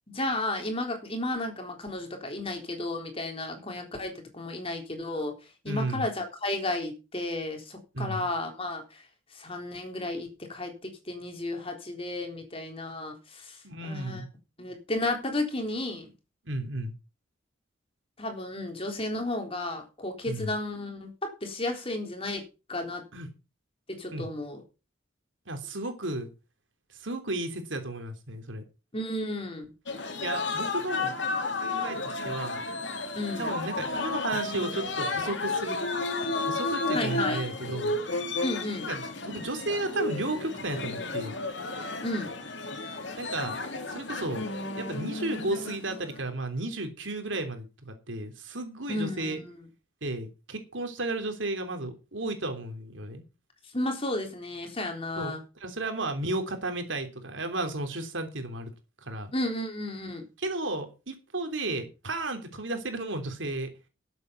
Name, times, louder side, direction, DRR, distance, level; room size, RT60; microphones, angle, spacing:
voice 1, 0.1-5.4 5.6-9.0 9.3-14.2 14.6-16.1 18.2-23.0 23.9-24.6 28.9-29.7 33.2-33.6 36.9-37.4 38.4-38.9 42.0-42.3 48.9-49.6 53.7-55.4 59.3-60.2, left 2 dB, 30° left, 3.8 m, -33 dB
voice 2, 5.7-6.1 7.9-8.3 13.6-14.3 16.4-16.9 20.2-20.5 23.1-23.3 24.1-24.3 25.5-26.3 26.9-28.6 30.2-31.2 31.6-32.6 33.4-35.8 36.4-38.0 38.8-41.3 43.2-43.6 43.9-44.4 44.8-49.4 50.0-53.2 55.2-55.3 55.6-58.7 59.0-59.3 60.4-63.7, right 2 dB, 80° right, 3.2 m, -33 dB
sound 1, 29.9-46.2, left 3 dB, 65° left, 2.6 m, -32 dB
13.0 x 8.2 x 5.8 m
head